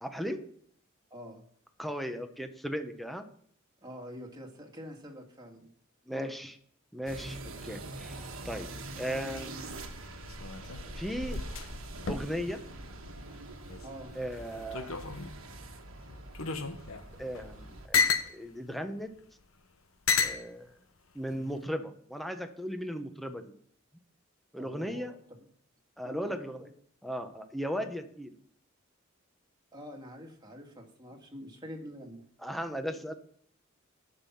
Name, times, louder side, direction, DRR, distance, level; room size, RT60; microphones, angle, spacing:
voice 1, 0.0-0.4 1.8-3.2 6.1-6.5 6.9-8.7 9.0-9.7 11.0-11.4 12.1-12.6 14.1-14.9 17.2-19.1 20.2-20.7 21.1-23.4 24.5-25.1 26.0-26.7 27.0-28.3 32.4-33.1, equal, ahead, 7 dB, 0.9 m, -36 dB
voice 2, 1.1-1.4 3.8-5.7 6.1-6.3 13.8-14.1 24.6-25.2 26.0-26.7 29.7-32.3, equal, 20° right, 1 dB, 2.0 m, -46 dB
sound 1, 7.1-17.9, right 2 dB, 85° right, 1.3 m, -44 dB
sound 2, 9.2-13.9 14.2-15.5 16.1-18.3 19.2-19.3 20.1-20.4 21.3-21.7, left 5 dB, 80° left, 0.9 m, -33 dB
13.5 x 5.5 x 5.8 m, 0.64 s
head